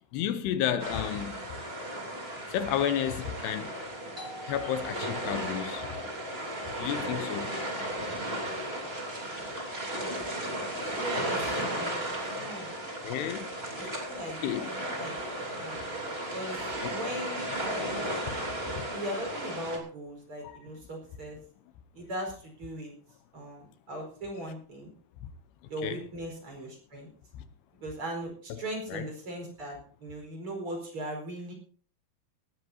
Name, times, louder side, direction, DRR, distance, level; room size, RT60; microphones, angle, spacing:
voice 1, 0.1-1.4 2.5-3.7 4.4-5.9 6.8-7.5 13.0-13.9 14.4-14.7 16.8-16.9 18.3-18.4 18.8-18.9 20.4-20.6 25.8-26.0 27.3-27.5 28.9-29.0, left 10 dB, 80° left, 2.9 m, -32 dB
sound 1, 0.8-19.8, right 1 dB, 15° right, 2.7 m, -35 dB
Doorbell, 4.2-9.5, equal, 80° right, 0.4 m, -51 dB
voice 2, 9.9-10.6 10.9-11.9 12.4-12.8 13.8-15.2 15.6-15.8 16.3-17.5 18.9-21.4 21.9-22.9 23.3-24.9 25.7-27.1 27.8-31.5, right 1 dB, 30° right, 5.2 m, -39 dB
18.5 x 14.5 x 2.8 m
omnidirectional pair, 5.0 m